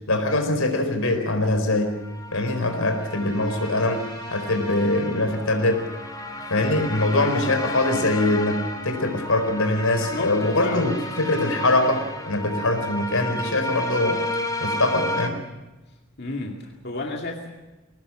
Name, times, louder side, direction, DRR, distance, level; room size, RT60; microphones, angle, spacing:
voice 1, 0.1-1.9 2.3-5.8 6.5-14.2 14.6-15.4, left 2 dB, 85° left, 6 dB, 4.5 m, -23 dB
sound 1, 1.9-15.3, left 1 dB, 20° left, 2.6 m, -32 dB
voice 2, 10.1-10.9 16.2-17.5, left 2 dB, 50° left, 0 dB, 2.3 m, -32 dB
22.0 x 19.0 x 7.5 m, 1.1 s
head